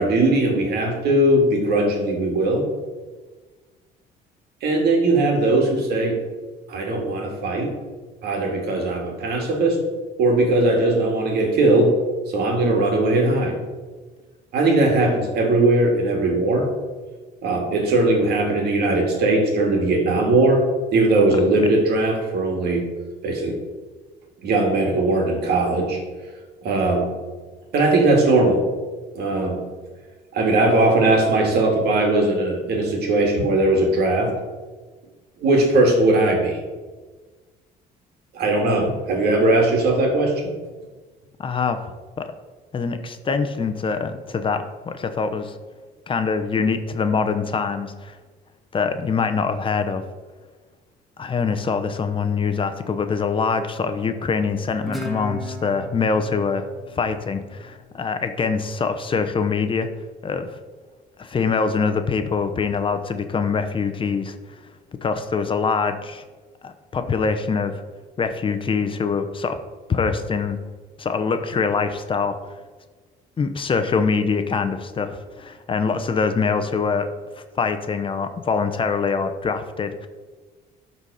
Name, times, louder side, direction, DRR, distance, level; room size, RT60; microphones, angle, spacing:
voice 1, 0.0-2.7 4.6-6.2 6.7-7.7 8.2-9.8 10.2-12.0 12.3-13.6 14.5-16.7 17.4-20.6 20.9-22.9 23.2-23.6 24.4-26.0 26.6-27.1 27.7-28.6 29.2-29.6 30.3-34.3 35.4-36.6 38.3-40.6, right 2 dB, 70° right, 1 dB, 2.2 m, -19 dB
voice 2, 41.4-41.8 42.2-42.3 42.7-45.6 46.1-48.2 48.7-50.0 51.2-59.9 60.2-60.5 61.2-64.6 65.0-66.2 66.6-67.7 68.2-69.6 69.9-70.6 71.0-72.5 73.4-77.1 77.6-80.1, left 5 dB, 30° left, 8 dB, 0.7 m, -24 dB
Guitar, 54.9-58.1, left 1 dB, ahead, 1.4 m, -36 dB
12.0 x 4.1 x 4.8 m, 1.4 s
cardioid pair, 110°, 17 cm